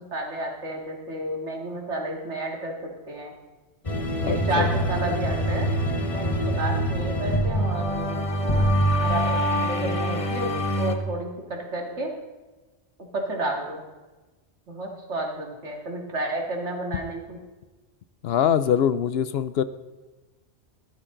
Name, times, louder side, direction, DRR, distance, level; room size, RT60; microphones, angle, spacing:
voice 1, 0.0-2.7 3.1-3.3 4.2-5.7 6.1-8.3 8.9-12.1 13.1-13.8 14.7-17.4, right 2 dB, 85° right, 1 dB, 2.4 m, -31 dB
sound 1, 3.9-10.9, equal, 30° left, 1.1 m, -25 dB
voice 2, 4.2-4.7 18.2-19.6, left 8 dB, 65° left, 14 dB, 0.8 m, -23 dB
15.5 x 12.0 x 3.8 m, 1.2 s
omnidirectional pair, 1.2 m